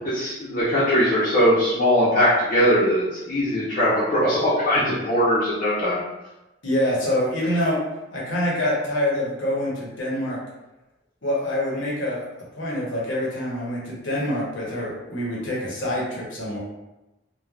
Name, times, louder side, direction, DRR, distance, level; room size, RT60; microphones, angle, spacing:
voice 1, 0.1-6.0, equal, 45° left, -10 dB, 0.7 m, -20 dB
voice 2, 6.6-7.8 8.1-10.4 11.2-12.3 12.6-16.6, left 1 dB, 85° left, -5 dB, 1.0 m, -25 dB
3.1 x 2.2 x 2.4 m, 0.99 s
head